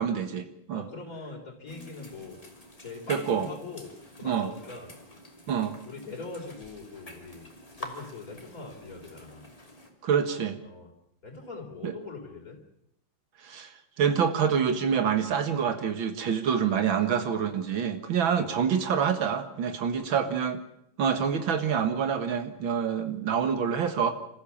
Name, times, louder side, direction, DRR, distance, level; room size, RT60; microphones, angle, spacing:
voice 1, 0.0-0.8 3.1-3.5 4.2-4.5 5.5-5.7 10.0-10.6 11.8-11.9 13.4-13.7 14.0-20.6 21.0-24.1, right 7 dB, 75° right, 8 dB, 2.4 m, -26 dB
voice 2, 0.7-2.4 2.8-4.9 5.8-9.5 10.6-10.9 11.2-12.6 18.3-18.6 19.9-20.3, left 3 dB, 45° left, 1 dB, 4.3 m, -42 dB
sound 1, 1.7-9.9, left 1 dB, 15° left, 2.8 m, -47 dB
26.5 x 14.5 x 7.2 m, 0.75 s
omnidirectional pair, 2.2 m